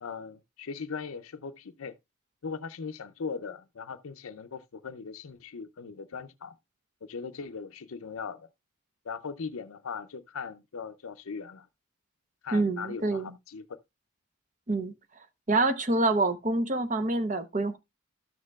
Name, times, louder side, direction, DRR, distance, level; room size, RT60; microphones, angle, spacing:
voice 1, 0.0-1.9 2.4-6.6 7.0-8.5 9.0-11.7 12.4-13.8, left 5 dB, 80° left, 0.6 m, -39 dB
voice 2, 12.5-13.3 14.7-14.9 15.5-17.8, right 2 dB, 35° right, 0.9 m, -26 dB
13.5 x 6.5 x 2.3 m
head